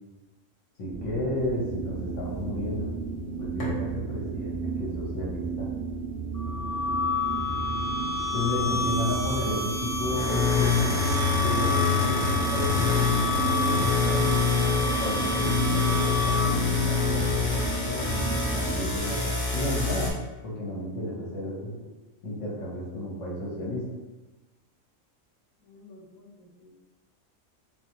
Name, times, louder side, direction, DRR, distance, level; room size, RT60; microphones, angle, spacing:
voice 1, 0.8-2.9 3.4-5.7 8.3-10.9 11.4-14.5 14.8-20.1 20.4-21.7 22.2-23.8, left 1 dB, 65° left, -4 dB, 1.3 m, -33 dB
sound 1, 0.9-19.0, right 4 dB, 70° right, 1.0 m, -33 dB
sound 2, 3.6-3.8 9.9-20.1, left 5 dB, 30° left, 0.8 m, -26 dB
High frequency arp pad, 6.3-16.7, left 2 dB, 5° left, 0.3 m, -30 dB
voice 2, 25.6-26.8, left 2 dB, 85° left, -2 dB, 1.1 m, -53 dB
3.9 x 2.5 x 2.9 m, 1.1 s
omnidirectional pair, 1.4 m